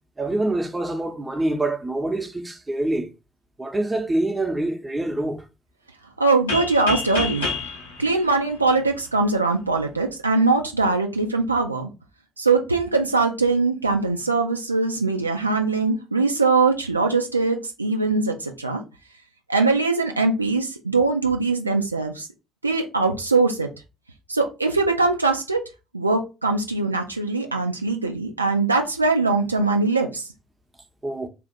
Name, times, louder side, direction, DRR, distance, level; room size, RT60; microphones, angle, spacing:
voice 1, 0.2-3.1 3.6-5.4 31.0-31.3, right 2 dB, 15° right, 0.8 m, -25 dB
voice 2, 6.2-7.5 8.0-11.9 12.4-18.8 19.5-22.3 22.6-23.7 24.3-25.6 25.9-30.3, right 3 dB, 90° right, 0.4 m, -22 dB
sound 1, 6.5-9.2, left 4 dB, 85° left, 1.1 m, -30 dB
3.4 x 2.4 x 4.4 m
figure-of-eight pair, 50°, 0 cm